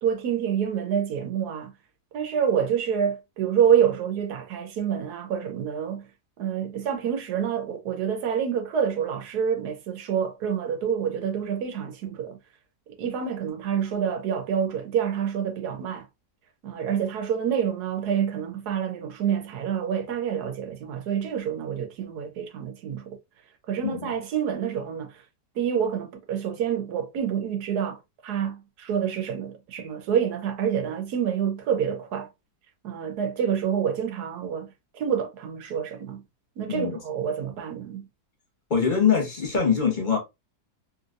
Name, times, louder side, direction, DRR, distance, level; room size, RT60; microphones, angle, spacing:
voice 1, 0.0-1.7 2.1-6.0 6.4-12.4 13.0-16.0 16.6-23.2 23.7-25.1 25.6-28.0 28.2-32.3 32.8-34.7 34.9-36.2 36.6-38.1, right 8 dB, 75° right, 1.3 m, -27 dB
voice 2, 36.7-37.0 38.7-40.2, left 6 dB, 35° left, 0.9 m, -23 dB
3.1 x 2.8 x 2.5 m
omnidirectional pair, 1.7 m